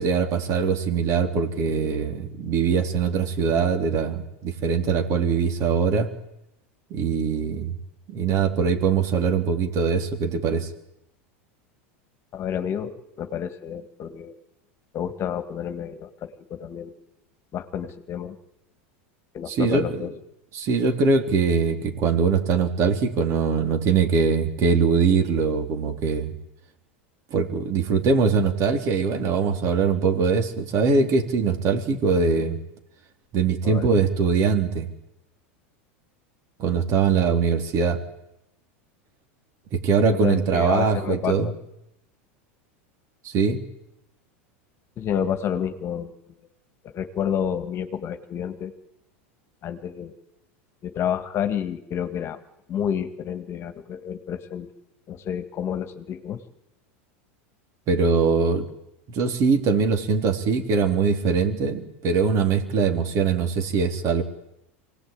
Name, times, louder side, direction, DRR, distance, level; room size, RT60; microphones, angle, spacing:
voice 1, 0.0-6.1 6.9-7.7 8.1-10.7 19.5-20.1 20.5-26.3 27.3-32.6 33.3-34.9 36.6-38.0 39.7-41.5 43.2-43.6 57.9-58.7 59.1-64.2, right 5 dB, 45° right, 5 dB, 3.5 m, -22 dB
voice 2, 12.3-14.4 14.9-16.9 17.5-18.4 19.3-20.1 33.6-33.9 40.1-41.5 45.0-46.1 46.9-48.7 49.6-50.1 50.8-52.4 52.7-54.7 55.1-56.4, left 8 dB, 40° left, 9 dB, 2.0 m, -29 dB
24.5 x 18.5 x 8.9 m, 0.83 s
hypercardioid pair, 110°, 7 cm